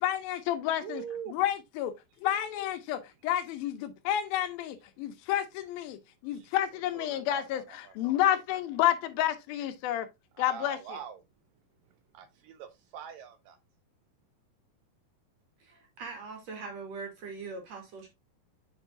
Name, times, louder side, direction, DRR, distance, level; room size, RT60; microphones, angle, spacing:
voice 1, 0.0-1.0 1.3-1.9 2.2-6.0 6.2-10.1 10.4-10.8, left 12 dB, 80° left, 2.6 m, -30 dB
voice 2, 0.8-1.4 6.3-6.5 6.9-7.9 10.3-11.2 12.1-13.6, right 8 dB, 80° right, 2.1 m, -43 dB
voice 3, 15.6-18.1, right 4 dB, 50° right, 2.9 m, -41 dB
8.9 x 5.5 x 2.5 m
omnidirectional pair, 4.3 m